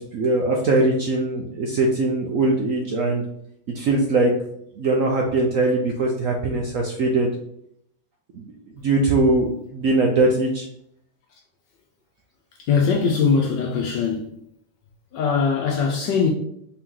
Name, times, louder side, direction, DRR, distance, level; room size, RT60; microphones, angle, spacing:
voice 1, 0.0-3.2 3.7-4.3 4.8-7.3 8.3-8.5 8.8-10.7, right 2 dB, 65° right, 0.8 m, -21 dB
voice 2, 12.6-14.4 15.1-16.3, left 5 dB, 80° left, 1.3 m, -21 dB
4.4 x 3.0 x 3.7 m
omnidirectional pair, 1.9 m